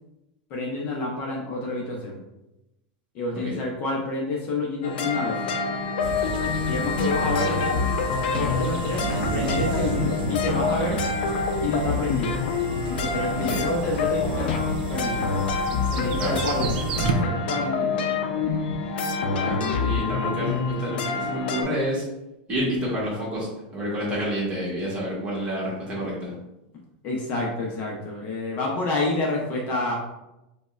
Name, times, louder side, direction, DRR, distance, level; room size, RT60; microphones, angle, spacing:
voice 1, 0.5-2.2 3.1-5.4 6.7-7.8 8.2-11.0 11.6-12.3 12.9-15.1 15.9-18.1 27.0-29.9, left 2 dB, 30° left, -1 dB, 0.6 m, -28 dB
sound 1, 4.8-21.6, left 4 dB, 80° left, 0.4 m, -27 dB
sound 2, 6.0-17.1, right 4 dB, 70° right, 0.4 m, -32 dB
voice 2, 7.3-7.7 13.5-13.6 16.2-16.4 19.2-22.0 22.5-26.3, equal, 20° right, -5 dB, 1.1 m, -29 dB
5.1 x 2.1 x 2.4 m, 0.94 s
supercardioid pair, 165°, 5 cm